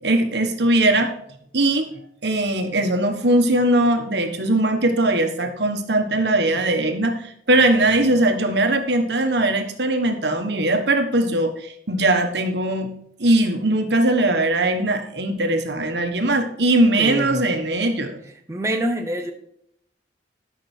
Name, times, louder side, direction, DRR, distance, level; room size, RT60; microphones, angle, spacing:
voice 1, 0.0-1.1 1.5-1.9 2.2-12.9 13.2-18.2, right 1 dB, 65° right, 5 dB, 1.4 m, -20 dB
voice 2, 17.0-17.5 18.5-19.3, right 1 dB, 15° right, 3 dB, 0.7 m, -25 dB
12.5 x 6.1 x 4.4 m, 0.72 s
head